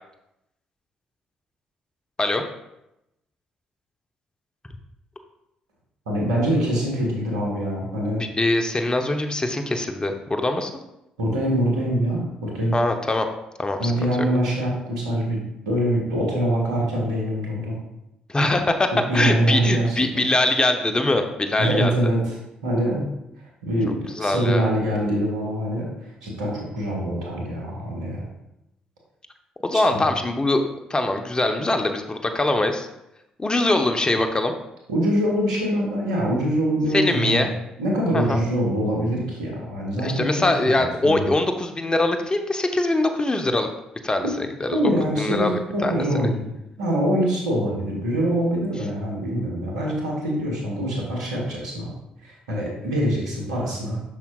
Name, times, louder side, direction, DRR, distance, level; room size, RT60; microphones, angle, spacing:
voice 1, 6.1-8.2 11.2-12.7 13.8-17.8 19.1-20.2 21.6-22.4 22.6-23.0 23.6-28.2 29.9-30.1 34.9-37.5 37.8-41.3 44.2-44.3 44.7-46.5 46.8-51.9 52.2-54.0, right 1 dB, 90° right, -3 dB, 1.5 m, -24 dB
voice 2, 8.2-10.7 12.7-13.3 13.6-13.9 18.3-22.0 24.2-24.7 29.6-30.6 30.9-32.9 33.4-34.5 36.9-37.5 38.1-38.4 40.0-43.7 44.0-44.3 44.6-44.8 45.2-46.3, left 2 dB, 25° left, 6 dB, 0.8 m, -22 dB
7.2 x 5.8 x 2.4 m, 0.86 s
hypercardioid pair, 45°, 3 cm